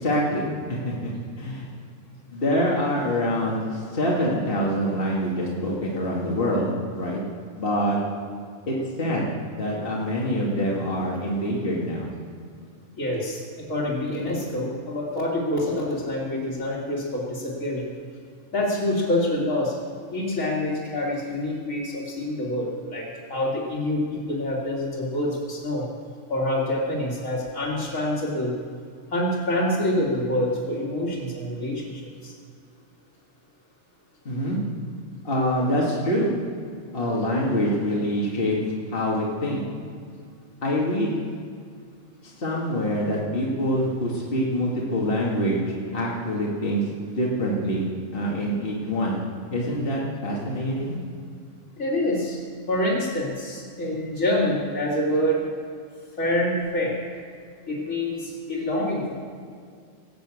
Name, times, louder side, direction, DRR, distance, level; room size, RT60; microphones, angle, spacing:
voice 1, 0.0-1.7 2.3-7.2 7.5-8.0 8.7-9.2 9.6-12.1 34.3-34.6 35.2-36.3 36.9-38.6 38.9-39.6 40.6-41.1 42.2-45.6 45.9-47.8 48.1-49.2 49.5-51.0, equal, 45° left, -4 dB, 2.3 m, -25 dB
voice 2, 13.0-13.4 13.7-17.8 18.5-19.7 20.1-25.8 26.3-28.5 29.1-32.3 51.8-52.4 52.7-55.4 56.2-57.0 57.7-59.1, left 1 dB, 85° left, -5 dB, 3.1 m, -26 dB
19.0 x 7.2 x 8.5 m, 2.2 s
omnidirectional pair, 1.3 m